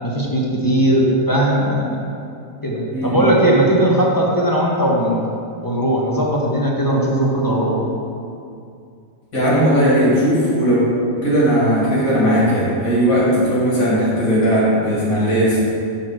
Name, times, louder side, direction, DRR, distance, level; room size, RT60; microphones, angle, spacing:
voice 1, 0.0-2.1 2.6-5.2 5.6-7.8, right 1 dB, 20° left, -3 dB, 0.7 m, -18 dB
voice 2, 2.9-3.4 9.3-10.8 11.2-15.6, equal, 70° left, -8 dB, 2.5 m, -17 dB
6.1 x 4.2 x 6.4 m, 2.5 s
omnidirectional pair, 1.5 m